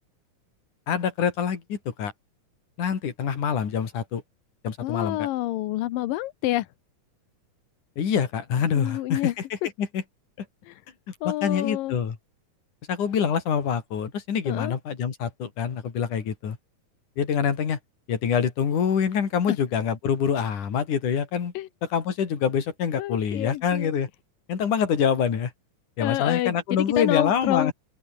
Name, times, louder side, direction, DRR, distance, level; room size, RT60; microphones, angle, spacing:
voice 1, 0.9-2.1 2.8-4.2 4.6-5.3 8.0-9.3 9.8-10.0 11.1-12.2 12.9-16.6 17.2-17.8 18.1-21.5 21.8-24.1 24.5-25.5 26.0-27.7, left 7 dB, 65° left, 4.5 m, -25 dB
voice 2, 4.8-6.7 8.7-9.3 10.7-10.8 11.2-11.9 14.5-14.7 19.5-19.6 21.5-21.7 23.0-23.9 26.0-27.7, left 15 dB, 90° left, 2.7 m, -28 dB
omnidirectional pair, 3.8 m